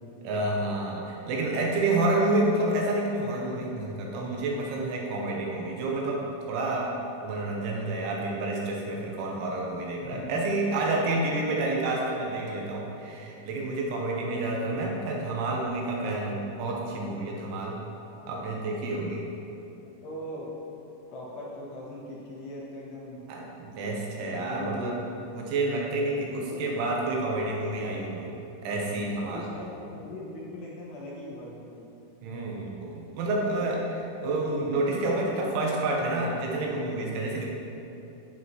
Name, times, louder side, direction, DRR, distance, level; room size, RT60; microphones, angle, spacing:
voice 1, 0.2-6.9 7.2-17.8 18.3-19.3 23.3-25.0 25.3-28.3 28.6-29.5 32.2-37.5, right 2 dB, 80° right, -2 dB, 3.2 m, -29 dB
voice 2, 18.7-19.0 19.8-20.5 21.1-23.2 24.2-25.2 26.3-26.6 29.3-31.8, left 1 dB, 70° left, -5 dB, 2.9 m, -40 dB
10.5 x 7.7 x 3.1 m, 2.9 s
omnidirectional pair, 5.8 m